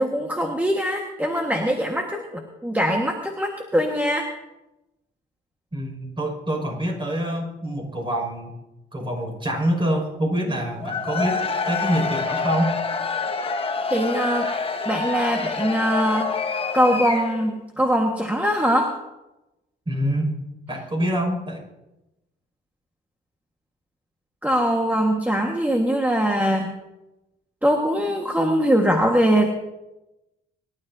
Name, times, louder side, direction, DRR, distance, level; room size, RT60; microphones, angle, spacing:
voice 1, 0.0-4.3 13.9-14.5 14.8-16.3 16.7-18.9 24.4-26.7 27.6-29.5, equal, 10° right, 1 dB, 1.6 m, -22 dB
voice 2, 5.7-8.5 8.9-12.7 19.9-20.3 20.7-21.6, equal, 25° right, 1 dB, 5.8 m, -25 dB
Cheering / Crowd, 10.8-17.5, left 4 dB, 30° left, 1.2 m, -27 dB
24.0 x 12.0 x 2.8 m, 0.98 s
cardioid pair, 90°, 20 cm